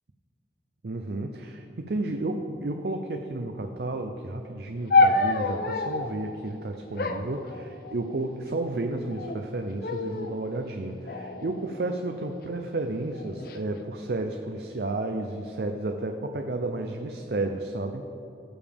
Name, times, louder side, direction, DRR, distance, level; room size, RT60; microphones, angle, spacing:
voice 1, 0.8-18.1, right 2 dB, 65° right, 4 dB, 0.5 m, -32 dB
sound 1, 4.9-6.2 7.0-8.2 9.0-9.5 9.8-10.4 11.1-12.4 13.1-13.6, left 3 dB, 55° left, 0.5 m, -27 dB
16.0 x 7.1 x 3.5 m, 2.9 s
head